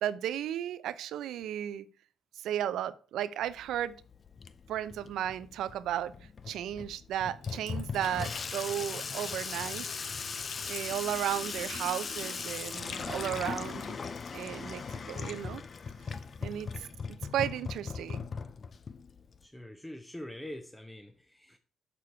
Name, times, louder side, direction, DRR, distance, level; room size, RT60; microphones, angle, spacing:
voice 1, 0.0-1.9 2.3-3.9 4.7-6.1 6.5-9.9 10.7-14.0 14.3-15.6 16.4-18.3, right 11 dB, 80° right, 0.6 m, -34 dB
Water tap faucet / Sink (filling or washing), 3.4-19.5, left 5 dB, 40° left, 0.6 m, -39 dB
Water tap faucet / Sink (filling or washing) / Trickle dribble, 7.4-14.4, left 7 dB, 85° left, 1.1 m, -53 dB
voice 2, 19.4-21.6, left 1 dB, 5° left, 0.7 m, -45 dB
6.8 x 6.7 x 4.7 m
cardioid pair, 90°, 0 cm